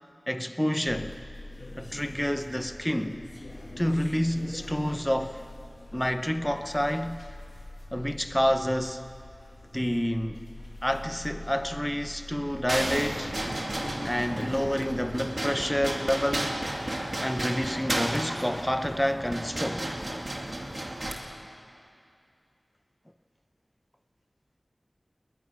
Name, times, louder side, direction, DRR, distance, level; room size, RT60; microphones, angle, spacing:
voice 1, 0.3-1.1 1.8-3.2 3.8-5.4 5.9-7.2 7.9-9.0 9.7-10.4 10.8-13.3 14.0-16.6 17.2-19.9, equal, 10° left, 8 dB, 0.9 m, -28 dB
sound 1, 0.8-15.2, left 1 dB, 75° left, 1.7 m, -44 dB
sound 2, 12.7-21.1, right 1 dB, 50° right, 2.4 m, -33 dB
20.5 x 20.0 x 6.3 m, 2.5 s
wide cardioid pair, 45°, 0 cm